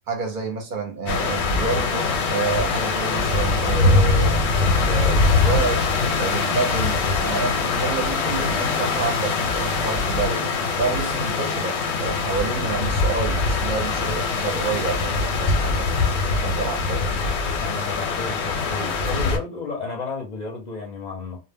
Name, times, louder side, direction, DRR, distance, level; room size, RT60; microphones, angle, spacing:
voice 1, 0.1-5.9 6.2-10.5 10.8-16.1 16.4-17.3, right 4 dB, 55° right, 0.7 m, -29 dB
sound 1, 1.1-19.4, left 3 dB, 85° left, 0.9 m, -22 dB
voice 2, 17.6-21.4, left 4 dB, 50° left, 0.6 m, -32 dB
2.1 x 2.0 x 3.3 m
omnidirectional pair, 1.1 m